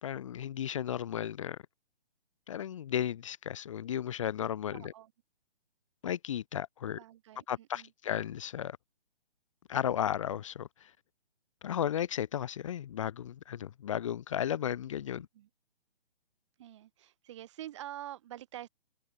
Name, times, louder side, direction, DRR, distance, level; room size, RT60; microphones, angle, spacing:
voice 1, 0.0-1.6 2.5-4.9 6.0-7.0 7.5-8.8 9.7-10.9 11.6-15.3, left 10 dB, 30° left, 2.1 m, -34 dB
voice 2, 4.7-5.1 6.9-7.9 15.2-15.5 16.6-18.7, right 13 dB, 30° right, 7.8 m, -46 dB
hypercardioid pair, 170°, 32 cm